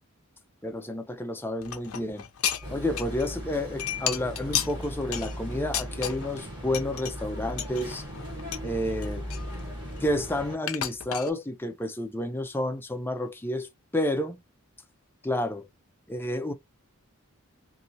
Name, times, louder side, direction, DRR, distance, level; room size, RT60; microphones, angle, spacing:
voice 1, 0.6-2.2 2.7-8.0 8.6-9.3 10.0-14.4 15.2-15.7 16.1-16.5, left 1 dB, 10° left, 0.5 m, -30 dB
sound 1, 1.6-3.3 3.5-6.4 6.7-7.1 7.6-8.7 9.0-10.2 10.7-11.3, left 10 dB, 70° left, 0.5 m, -33 dB
sound 2, 2.6-10.6, equal, 20° right, 1.3 m, -38 dB
2.7 x 2.7 x 2.8 m
head